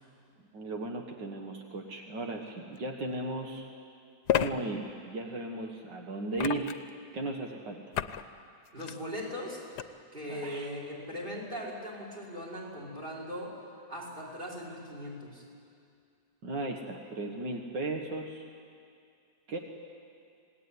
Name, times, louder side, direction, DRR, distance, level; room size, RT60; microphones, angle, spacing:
voice 1, 0.5-3.7 4.3-6.7 7.1-7.8 10.3-10.7 16.4-18.5 19.5-19.6, right 2 dB, 80° right, 2 dB, 2.2 m, -36 dB
sound 1, 2.8-2.9 4.3-4.5 6.4-6.9 7.9-8.2 8.7-9.0 9.8-9.9, left 11 dB, 70° left, 1.3 m, -30 dB
voice 2, 8.7-9.6 10.1-13.5 13.9-15.4, equal, 30° right, -2 dB, 5.6 m, -39 dB
27.0 x 19.0 x 9.8 m, 2.4 s
omnidirectional pair, 1.9 m